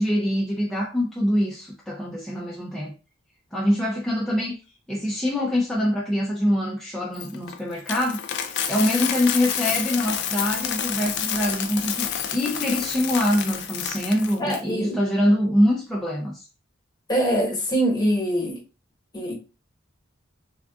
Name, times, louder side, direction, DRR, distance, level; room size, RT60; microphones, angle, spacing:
voice 1, 0.0-2.9 3.5-4.6 4.9-16.5, left 1 dB, ahead, 0.5 m, -24 dB
Coin (dropping), 7.2-14.6, left 8 dB, 60° left, 0.4 m, -29 dB
voice 2, 14.4-15.0 17.1-18.6 19.1-19.3, equal, 20° left, 1.1 m, -23 dB
3.4 x 2.4 x 2.3 m
head